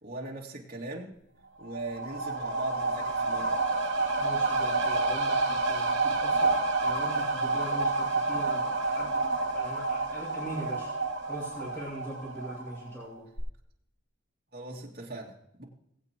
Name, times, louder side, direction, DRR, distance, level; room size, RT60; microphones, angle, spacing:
voice 1, 0.0-1.1 1.6-3.6 14.5-15.6, right 2 dB, 50° right, -2 dB, 2.4 m, -39 dB
sound 1, 1.6-13.1 13.4-13.5, right 3 dB, 85° right, 2.3 m, -29 dB
voice 2, 4.2-10.9 11.2-13.3, right 1 dB, 10° left, -6 dB, 2.4 m, -41 dB
20.5 x 8.2 x 3.0 m, 0.75 s
head